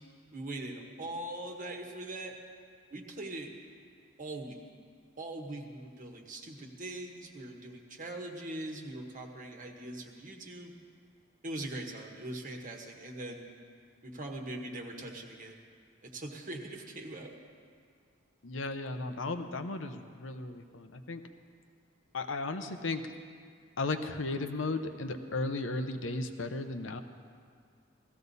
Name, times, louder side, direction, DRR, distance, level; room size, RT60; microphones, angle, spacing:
voice 1, 0.3-2.3 2.9-3.5 4.2-4.6 5.2-10.7 11.4-13.5 14.0-15.6 16.0-17.3, right 1 dB, 45° right, 1 dB, 1.2 m, -41 dB
voice 2, 18.4-21.2 22.1-23.0 23.8-27.0, left 3 dB, 80° left, 8 dB, 0.8 m, -35 dB
17.0 x 14.5 x 4.1 m, 2.1 s
head